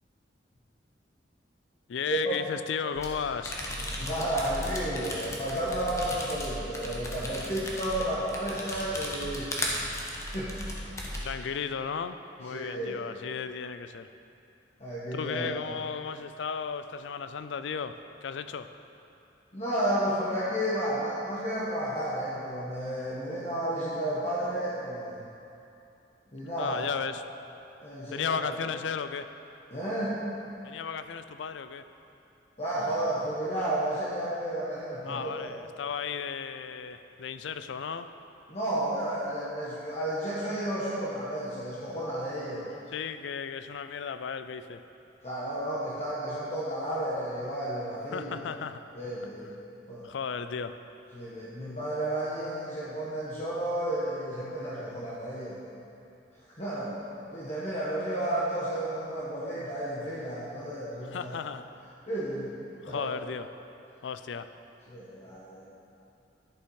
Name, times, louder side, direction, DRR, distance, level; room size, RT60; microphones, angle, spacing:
voice 1, 1.9-3.6 11.2-14.1 15.1-18.7 26.6-27.3 28.1-29.3 30.6-31.9 35.1-38.1 42.9-44.8 48.1-48.9 50.0-50.8 61.0-61.7 62.8-63.5 64.0-64.5, left 6 dB, 75° left, 11 dB, 0.4 m, -35 dB
sound 1, 2.9-11.2, left 1 dB, 15° left, 1.0 m, -36 dB
voice 2, 3.9-9.5 10.3-10.5 12.5-13.0 14.8-15.6 19.5-25.2 26.3-26.8 27.8-28.5 29.7-30.2 32.6-35.5 38.5-42.7 45.2-48.5 48.9-49.5 49.9-50.0 51.1-55.6 56.5-56.9 57.3-61.3 62.1-62.5 62.8-63.1 64.9-65.6, right 1 dB, 35° left, -9 dB, 1.2 m, -32 dB
11.0 x 6.8 x 4.7 m, 2.8 s
head